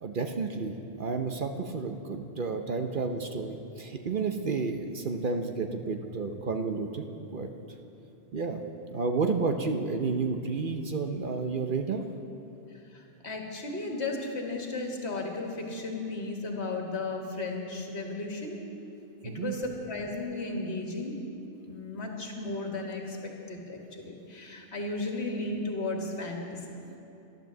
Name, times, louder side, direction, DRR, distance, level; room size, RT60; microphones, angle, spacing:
voice 1, 0.0-7.5 8.3-8.6 8.9-12.1 19.2-19.5, right 4 dB, 50° right, 5 dB, 0.9 m, -31 dB
voice 2, 12.9-18.6 19.2-21.2 21.5-26.8, left 2 dB, 70° left, 1 dB, 1.9 m, -35 dB
12.0 x 12.0 x 7.3 m, 2.9 s
omnidirectional pair, 1.2 m